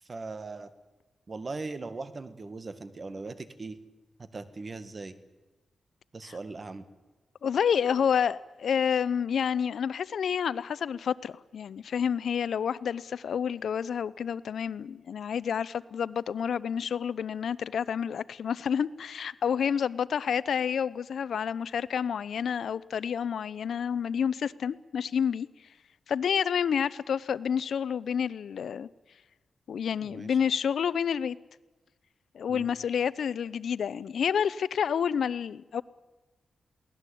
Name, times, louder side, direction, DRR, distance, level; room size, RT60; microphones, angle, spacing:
voice 1, 0.1-0.7 1.3-3.8 4.2-5.2 6.1-6.8 30.0-30.4 32.5-32.7, right 3 dB, 40° right, 1.8 m, -39 dB
voice 2, 7.4-25.5 26.1-28.9 29.7-31.4 32.3-35.8, left 7 dB, 75° left, 0.6 m, -29 dB
22.5 x 18.0 x 8.5 m
cardioid pair, 80°, 0 cm